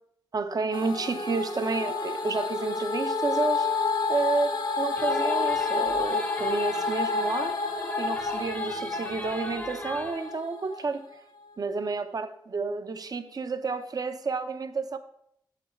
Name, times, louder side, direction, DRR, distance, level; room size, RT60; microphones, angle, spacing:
voice 1, 0.3-3.7 4.1-7.6 8.0-11.0 11.6-15.0, right 4 dB, 50° right, 0.7 m, -30 dB
sound 1, 0.7-10.9, left 4 dB, 70° left, 1.2 m, -29 dB
sound 2, 5.0-10.3, left 1 dB, 20° left, 0.7 m, -39 dB
6.9 x 6.0 x 4.4 m
cardioid pair, 55°, 8 cm